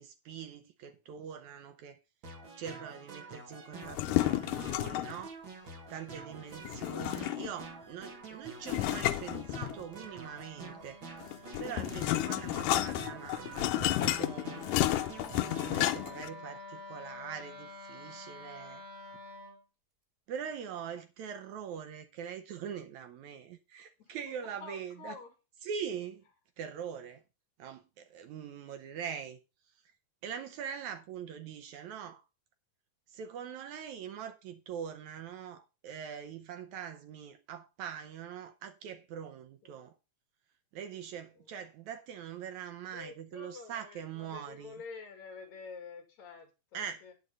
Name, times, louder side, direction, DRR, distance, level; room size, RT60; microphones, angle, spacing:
voice 1, 0.0-2.0 2.6-5.3 5.9-11.0 11.6-14.8 15.3-18.8 20.3-25.2 25.6-26.2 26.6-27.2 27.6-29.4 30.2-32.2 33.1-39.9 40.7-44.7 46.7-47.0, right 8 dB, 70° right, 2.0 m, -43 dB
sound 1, 2.2-16.0, right 3 dB, 45° right, 1.9 m, -48 dB
sound 2, 3.8-5.2 6.6-7.6 8.7-10.0 11.2-16.3, left 16 dB, 80° left, 2.1 m, -31 dB
Wind instrument woodwind instrument, 6.7-19.6, left 1 dB, 20° right, 2.6 m, -51 dB
voice 2, 24.0-25.3 39.6-39.8 42.9-47.1, left 5 dB, 60° left, 3.3 m, -48 dB
9.7 x 6.4 x 5.3 m
omnidirectional pair, 3.8 m